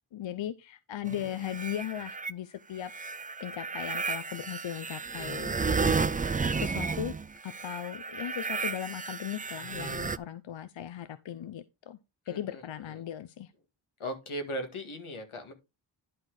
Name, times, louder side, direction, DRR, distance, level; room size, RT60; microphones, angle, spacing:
voice 1, 0.1-2.9 3.4-7.1 7.4-12.0 12.3-13.5, left 11 dB, 70° left, 0.7 m, -38 dB
sound 1, 1.1-2.3 2.8-10.2, right 4 dB, 20° right, 0.4 m, -33 dB
voice 2, 12.3-12.6 14.0-15.5, equal, 90° left, 2.0 m, -37 dB
11.0 x 4.1 x 4.8 m
cardioid pair, 65°, 48 cm